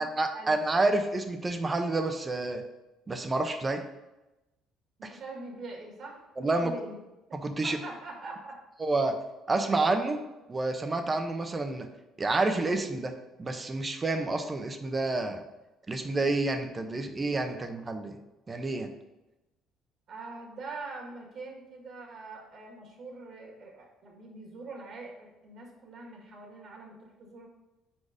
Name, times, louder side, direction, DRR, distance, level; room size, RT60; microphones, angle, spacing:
voice 1, 0.0-2.6 3.1-3.8 5.0-5.1 6.4-6.7 7.3-7.8 8.8-9.1 9.5-10.2 10.5-11.9 12.2-13.1 13.4-15.4 15.9-18.2 18.5-18.9, right 2 dB, 25° right, 7 dB, 0.8 m, -29 dB
voice 2, 5.0-7.0 7.6-8.6 20.1-27.5, right 3 dB, 60° right, -1 dB, 1.8 m, -43 dB
4.7 x 4.4 x 5.0 m, 0.99 s
supercardioid pair, 75°, 0 cm